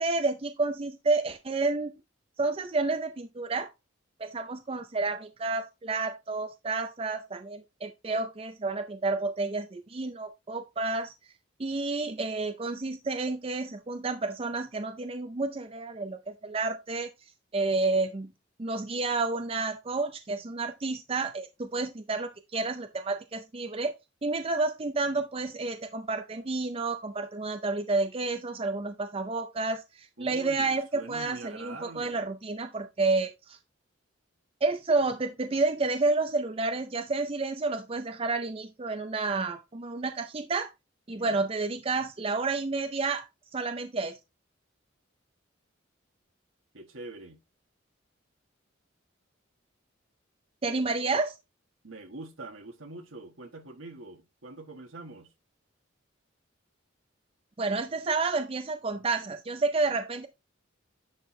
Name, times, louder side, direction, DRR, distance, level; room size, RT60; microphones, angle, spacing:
voice 1, 0.0-1.9 2.4-3.7 4.2-11.1 11.6-17.1 17.5-18.3 18.6-23.9 24.2-33.6 34.6-40.7 41.1-44.2 50.6-51.4 57.6-60.3, right 3 dB, 30° right, 0.5 m, -30 dB
voice 2, 30.2-32.3 41.1-41.4 46.7-47.4 51.8-55.3, right 2 dB, 85° right, 1.5 m, -44 dB
10.5 x 4.4 x 3.2 m
head